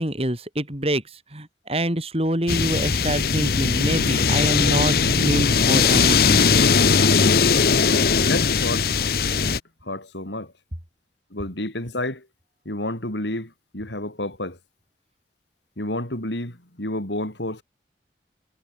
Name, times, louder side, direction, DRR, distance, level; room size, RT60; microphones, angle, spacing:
voice 1, 0.0-6.4, right 1 dB, 35° right, 5.1 m, -26 dB
sound 1, 2.5-9.6, left 5 dB, 55° left, 1.0 m, -19 dB
voice 2, 8.2-8.9 9.8-10.5 11.3-12.3 12.7-14.6 15.8-17.6, left 1 dB, 85° left, 5.7 m, -30 dB
head